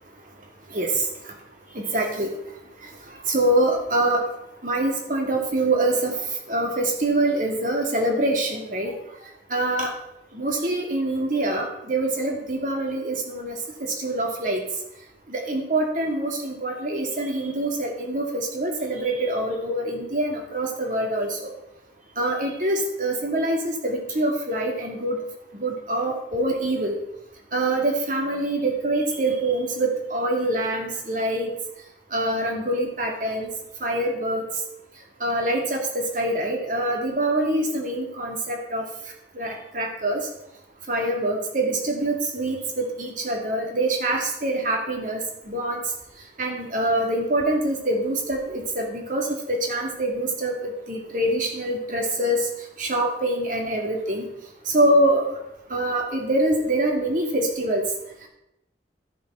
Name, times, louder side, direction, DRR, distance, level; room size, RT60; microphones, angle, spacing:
voice 1, 1.8-2.3 3.3-4.3 4.6-6.1 6.5-8.9 9.5-9.9 10.3-14.6 15.3-21.4 22.2-25.2 25.6-27.0 27.5-31.5 32.1-33.5 33.8-34.4 35.2-38.8 39.4-40.2 40.9-45.8 46.4-52.4 52.8-54.2 54.7-55.3 55.7-57.8, right 1 dB, 45° right, 1 dB, 2.4 m, -25 dB
13.0 x 6.9 x 5.6 m, 0.83 s
head